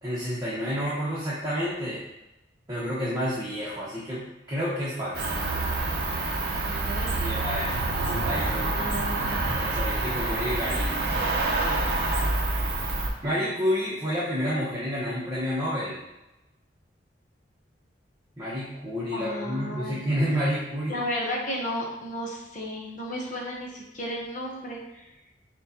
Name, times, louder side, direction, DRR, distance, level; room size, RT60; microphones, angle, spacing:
voice 1, 0.0-2.0 2.7-5.2 7.2-8.7 9.6-11.0 13.2-16.0 18.4-21.0, equal, 20° right, -9 dB, 0.9 m, -29 dB
Cricket, 5.1-13.1, right 2 dB, 60° right, 0.6 m, -27 dB
voice 2, 6.6-7.2 8.7-9.4 19.1-20.0 20.9-25.1, equal, 45° left, -2 dB, 0.8 m, -33 dB
5.9 x 2.3 x 2.8 m, 0.95 s
head